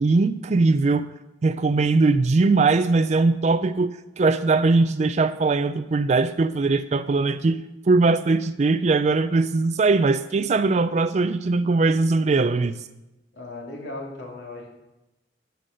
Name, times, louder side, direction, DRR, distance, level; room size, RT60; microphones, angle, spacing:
voice 1, 0.0-1.1 1.4-12.8, right 3 dB, 35° right, 10 dB, 0.4 m, -20 dB
voice 2, 13.3-14.7, left 2 dB, 65° left, -1 dB, 2.5 m, -36 dB
11.5 x 8.3 x 6.4 m, 0.98 s
head